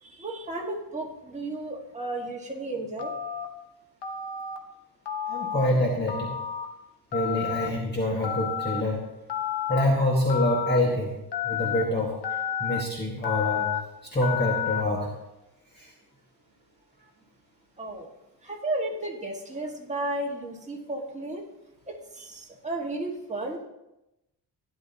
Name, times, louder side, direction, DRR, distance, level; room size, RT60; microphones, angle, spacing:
voice 1, 0.0-3.2 17.8-18.1 18.4-21.4 21.9-23.6, right 2 dB, 15° right, -1 dB, 1.7 m, -33 dB
Telephone, 3.0-3.5 4.0-4.6 5.1-5.7 6.1-6.7 7.1-7.7 8.2-8.8 9.3-9.8 10.3-10.8 11.3-11.8 12.2-12.8 13.2-13.8 14.2-14.8, left 9 dB, 75° left, 1.2 m, -30 dB
voice 2, 5.3-6.3 7.1-9.0 9.7-11.1 11.4-12.1 12.6-13.7 14.1-15.1 15.8-15.9, left 1 dB, 25° left, -3 dB, 1.8 m, -25 dB
16.0 x 10.5 x 2.9 m, 0.93 s
cardioid pair, 140°, 41 cm